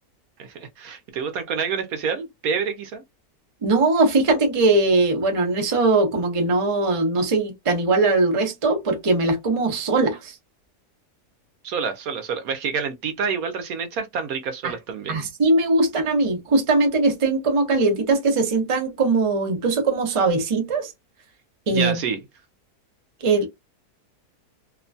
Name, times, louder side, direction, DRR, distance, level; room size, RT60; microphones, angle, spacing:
voice 1, 0.4-3.0 11.6-15.2 21.7-22.2, right 6 dB, 70° right, 1.0 m, -28 dB
voice 2, 3.6-10.3 14.6-14.7 15.1-20.9 21.7-22.0 23.2-23.5, right 3 dB, 30° right, 0.6 m, -20 dB
2.9 x 2.2 x 2.5 m
omnidirectional pair, 1.7 m